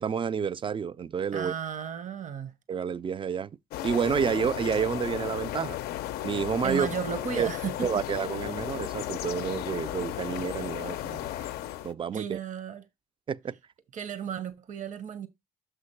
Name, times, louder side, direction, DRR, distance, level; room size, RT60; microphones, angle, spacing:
voice 1, 0.0-1.5 2.7-3.5 3.8-5.8 6.2-6.9 7.4-7.5 7.8-11.3 11.8-12.4 13.3-13.6, right 7 dB, 30° right, 0.4 m, -29 dB
voice 2, 1.3-2.5 6.6-7.9 11.2-11.6 12.1-12.8 13.9-15.3, right 8 dB, 50° right, 1.0 m, -34 dB
sound 1, 3.7-11.9, left 13 dB, 70° left, 0.4 m, -35 dB
6.3 x 5.0 x 4.3 m
supercardioid pair, 65°, 16 cm